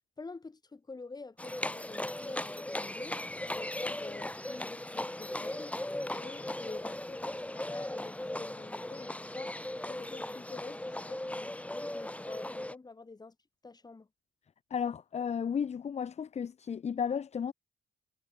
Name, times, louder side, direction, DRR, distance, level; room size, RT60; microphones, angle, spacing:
voice 1, 0.2-5.7 6.1-9.5 9.9-13.4 13.6-14.1, left 3 dB, 25° left, 7.9 m, -47 dB
Livestock farm animals working animals, 1.4-12.7, left 1 dB, 10° left, 3.2 m, -38 dB
voice 2, 14.7-17.5, left 7 dB, 45° left, 1.4 m, -33 dB
supercardioid pair, 75°, 16 cm